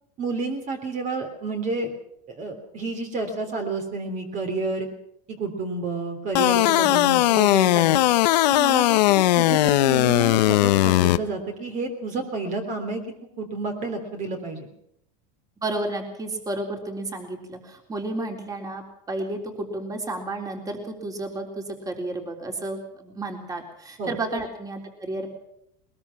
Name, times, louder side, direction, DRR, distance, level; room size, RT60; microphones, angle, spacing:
voice 1, 0.2-1.9 2.3-4.9 5.3-8.0 8.5-13.0 13.4-14.7 24.0-24.2, right 3 dB, 35° right, 5 dB, 3.5 m, -30 dB
sound 1, 6.4-11.2, left 16 dB, 80° left, 1.0 m, -19 dB
voice 2, 15.6-25.3, right 2 dB, 15° right, 3 dB, 3.8 m, -32 dB
21.0 x 21.0 x 6.0 m, 0.76 s
supercardioid pair, 130°, 21 cm